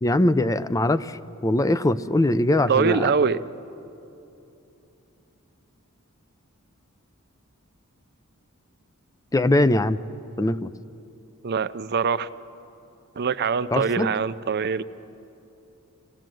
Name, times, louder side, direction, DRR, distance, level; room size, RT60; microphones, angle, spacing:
voice 1, 0.0-3.1 9.3-10.0 10.4-10.7 13.7-14.1, left 1 dB, 15° left, 14 dB, 0.4 m, -21 dB
voice 2, 2.7-3.4 11.4-12.3 13.2-14.8, right 5 dB, 50° right, 14 dB, 0.5 m, -23 dB
24.5 x 18.0 x 7.7 m, 2.9 s
head